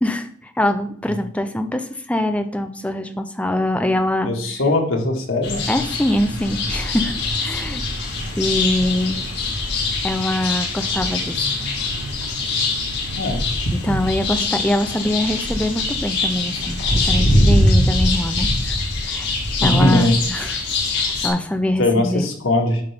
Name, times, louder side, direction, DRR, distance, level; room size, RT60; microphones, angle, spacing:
voice 1, 0.0-4.3 5.7-7.1 7.4-9.2 10.0-11.4 13.7-18.8 19.0-19.3 19.6-20.6 21.0-22.2, left 1 dB, 5° left, 7 dB, 0.6 m, -23 dB
voice 2, 4.3-5.6 7.5-7.6 13.1-13.4 13.8-14.0 19.6-20.1 21.8-22.8, left 1 dB, 90° left, 2 dB, 1.9 m, -20 dB
sound 1, 5.4-21.3, left 2 dB, 60° left, 2.3 m, -22 dB
9.8 x 5.4 x 3.4 m, 0.63 s
head